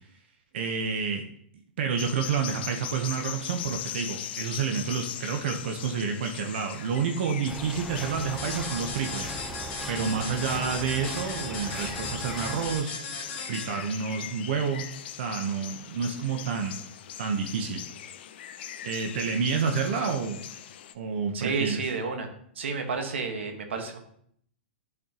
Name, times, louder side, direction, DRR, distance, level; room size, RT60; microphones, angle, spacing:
voice 1, 0.5-1.2 1.8-9.4 9.9-12.9 13.5-14.9 15.2-16.8 17.2-17.8 18.8-20.4 20.9-21.8, right 6 dB, 65° right, 4 dB, 0.8 m, -29 dB
sound 1, 2.0-20.9, left 11 dB, 60° left, 0.5 m, -40 dB
sound 2, 7.5-12.8, right 1 dB, 5° right, 0.7 m, -38 dB
sound 3, 8.4-13.9, left 4 dB, 35° left, 1.4 m, -37 dB
voice 2, 21.3-22.3 22.6-24.0, right 4 dB, 90° right, 5 dB, 1.3 m, -30 dB
11.0 x 4.2 x 2.9 m, 0.66 s
hypercardioid pair, 140°, 6 cm